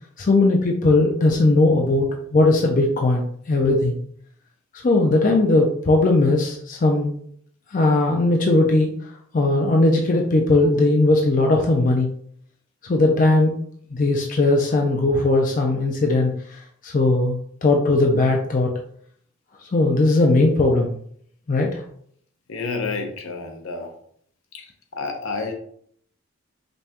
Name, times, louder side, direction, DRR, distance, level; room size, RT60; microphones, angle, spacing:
voice 1, 0.2-4.0 4.8-7.1 7.7-8.9 9.3-12.1 12.8-13.6 13.9-18.7 19.7-20.9 21.5-21.8, left 2 dB, 40° left, 1 dB, 0.4 m, -18 dB
voice 2, 22.5-23.9 24.5-24.6 25.0-25.5, left 4 dB, 75° left, 4 dB, 0.7 m, -29 dB
5.2 x 2.2 x 2.9 m, 0.64 s
head